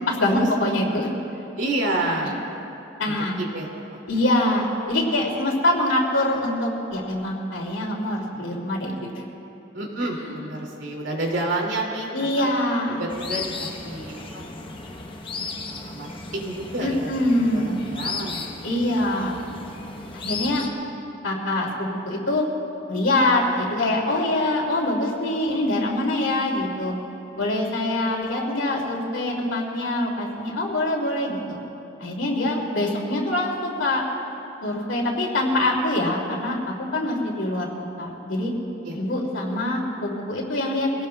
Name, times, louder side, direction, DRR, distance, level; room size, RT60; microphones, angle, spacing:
voice 1, 0.1-1.1 2.2-2.3 3.0-3.4 4.1-9.1 10.2-10.3 12.1-13.1 16.8-17.8 18.6-19.4 20.1-20.6 21.2-22.5 22.9-26.9 27.3-31.6 32.0-34.0 34.6-36.6 36.9-38.5 38.9-41.1, left 1 dB, 75° left, -2 dB, 2.6 m, -24 dB
voice 2, 1.6-2.4 3.0-4.1 8.3-9.0 9.7-12.5 12.9-15.0 15.6-17.1 17.5-18.5 37.2-37.4 38.8-39.0, right 1 dB, 70° right, -1 dB, 2.5 m, -30 dB
sound 1, 13.1-20.7, left 4 dB, 25° left, 0.9 m, -35 dB
24.0 x 18.0 x 2.3 m, 2.9 s
head